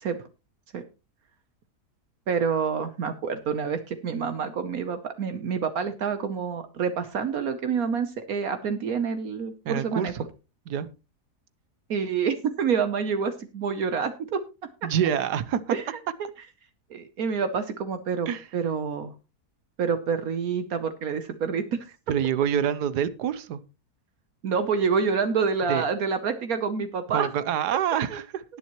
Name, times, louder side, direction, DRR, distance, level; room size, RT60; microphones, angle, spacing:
voice 1, 2.3-10.1 11.9-14.4 15.7-15.9 16.9-19.1 19.8-21.8 24.4-27.3 28.1-28.2, right 6 dB, 65° right, 9 dB, 1.3 m, -27 dB
voice 2, 9.6-10.2 10.7-10.9 14.8-15.8 18.3-18.5 22.1-23.6 25.7-25.8 27.1-28.4, right 9 dB, 85° right, 15 dB, 1.4 m, -26 dB
19.0 x 7.2 x 3.0 m, 0.30 s
omnidirectional pair, 1.7 m